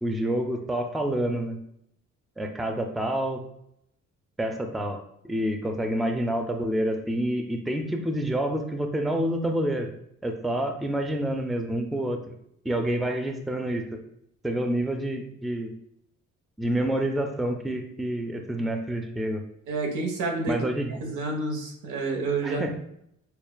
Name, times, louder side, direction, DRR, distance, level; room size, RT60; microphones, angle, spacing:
voice 1, 0.0-1.6 2.4-3.4 4.4-5.0 5.2-9.9 10.2-12.2 12.6-14.0 14.4-15.7 16.6-19.4 20.5-20.9 22.4-22.7, right 1 dB, ahead, 5 dB, 0.4 m, -28 dB
voice 2, 19.7-20.6 21.0-22.8, right 3 dB, 80° right, 1 dB, 1.0 m, -29 dB
6.8 x 2.3 x 2.2 m, 0.74 s
cardioid pair, 90°, 30 cm